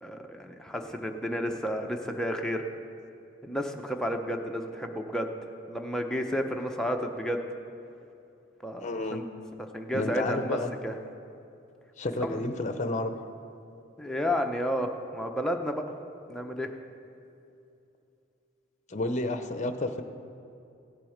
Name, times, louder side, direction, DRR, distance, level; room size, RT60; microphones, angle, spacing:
voice 1, 0.0-2.6 3.4-7.4 8.6-9.2 9.7-10.6 10.8-11.0 12.2-12.4 14.0-15.8 16.3-16.7, equal, 5° left, 3 dB, 0.7 m, -31 dB
voice 2, 8.8-9.3 9.9-10.7 12.0-13.2 18.9-20.0, left 2 dB, 40° left, 8 dB, 0.7 m, -30 dB
16.5 x 7.4 x 5.1 m, 2.7 s
head